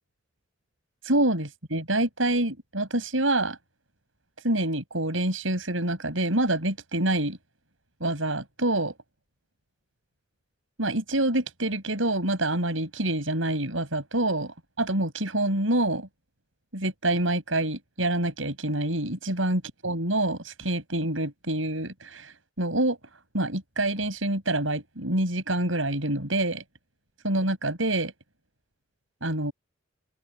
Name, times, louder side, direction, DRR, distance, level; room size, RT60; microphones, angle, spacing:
voice 1, 1.0-3.6 4.4-7.4 8.0-8.9 10.8-16.1 16.7-23.0 23.3-26.6 27.2-28.1 29.2-29.5, right 1 dB, 80° right, 7.6 m, -26 dB
head